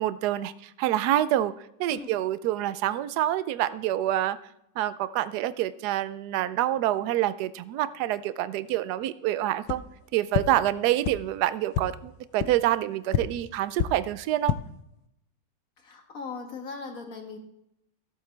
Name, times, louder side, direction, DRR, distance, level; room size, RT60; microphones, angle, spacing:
voice 1, 0.0-1.5 1.8-4.4 4.8-9.8 10.1-14.5, right 13 dB, 70° right, 14 dB, 1.1 m, -27 dB
sound 1, 9.6-9.8 10.3-10.4 11.0-11.1 11.7-11.8 12.4-12.5 13.1-13.2 13.7-13.9 14.3-14.6, left 12 dB, 85° left, 1.3 m, -26 dB
voice 2, 15.8-17.4, left 4 dB, 50° left, 3 dB, 1.8 m, -39 dB
15.0 x 7.9 x 3.3 m, 0.81 s
omnidirectional pair, 1.9 m